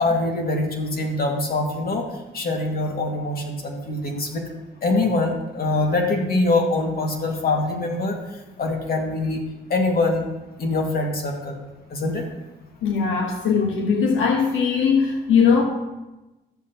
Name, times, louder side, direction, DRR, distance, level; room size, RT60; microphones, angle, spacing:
voice 1, 0.0-4.4 4.8-9.4 9.7-12.3, left 2 dB, 50° left, 1 dB, 2.1 m, -24 dB
voice 2, 12.8-15.6, left 6 dB, 85° left, 1 dB, 1.3 m, -20 dB
13.5 x 7.4 x 3.0 m, 1.0 s
cardioid pair, 90°, 20 cm